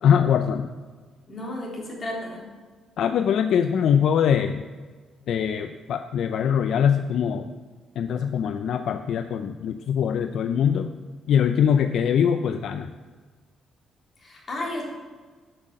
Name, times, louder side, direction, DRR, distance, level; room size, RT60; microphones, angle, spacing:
voice 1, 0.0-0.7 3.0-4.6 5.3-7.5 8.0-10.9 11.3-12.9, left 8 dB, 70° left, 9 dB, 0.5 m, -22 dB
voice 2, 1.3-2.5 14.2-14.8, left 1 dB, 40° left, -2 dB, 3.7 m, -33 dB
10.0 x 6.5 x 7.5 m, 1.4 s
cardioid pair, 90°, 0 cm